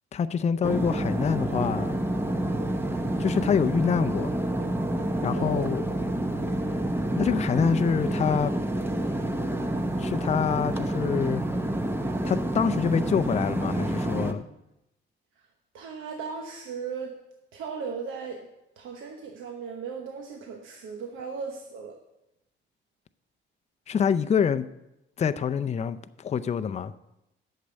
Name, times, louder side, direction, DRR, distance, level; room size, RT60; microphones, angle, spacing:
voice 1, 0.1-2.0 3.2-4.3 5.2-5.8 7.2-8.5 10.0-11.4 12.2-14.4 23.9-24.7 25.2-26.9, left 7 dB, 35° left, 0.5 m, -26 dB
sound 1, 0.6-14.3, right 1 dB, 10° right, 0.9 m, -28 dB
voice 2, 5.4-5.7 15.7-17.2 17.5-18.5 18.8-22.0, right 5 dB, 85° right, 1.0 m, -37 dB
8.4 x 6.6 x 8.0 m
cardioid pair, 90°, 20 cm